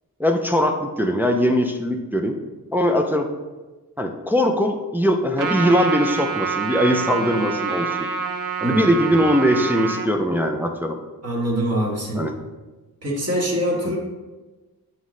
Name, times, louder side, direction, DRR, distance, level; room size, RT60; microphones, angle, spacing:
voice 1, 0.2-2.4 2.7-3.3 4.0-8.1 8.6-11.0 12.2-12.3 13.9-14.0, equal, 5° right, 3 dB, 0.3 m, -21 dB
Trumpet, 5.4-10.1, right 6 dB, 55° right, 0.6 m, -27 dB
voice 2, 11.2-12.3 13.0-14.0, equal, 40° right, -5 dB, 1.4 m, -24 dB
9.1 x 3.1 x 3.7 m, 1.2 s
wide cardioid pair, 160°, 37 cm